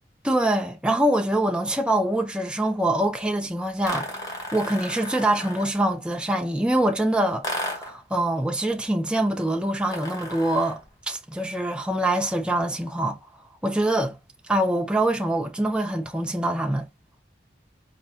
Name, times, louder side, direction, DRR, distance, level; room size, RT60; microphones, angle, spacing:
voice 1, 0.2-10.8 11.1-13.2 13.6-14.2 14.5-16.9, right 1 dB, 5° right, 0.4 m, -24 dB
sound 1, 3.8-5.8 7.4-8.0 9.8-10.9, left 1 dB, 20° left, 1.1 m, -34 dB
4.6 x 2.4 x 2.7 m
head